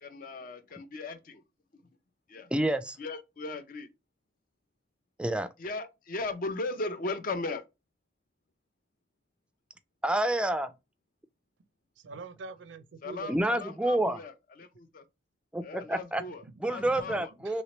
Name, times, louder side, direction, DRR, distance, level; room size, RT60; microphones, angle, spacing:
voice 1, 0.0-1.4 2.3-2.5 3.0-3.9 5.6-7.6 13.0-15.0 15.6-17.3, left 3 dB, 50° left, 0.6 m, -37 dB
voice 2, 2.5-3.0 5.2-5.5 10.0-10.7 13.3-14.2 15.5-16.2 16.6-17.6, right 1 dB, 5° right, 0.3 m, -28 dB
voice 3, 12.0-13.4 16.4-17.6, right 4 dB, 80° right, 0.4 m, -45 dB
3.2 x 3.1 x 2.9 m
head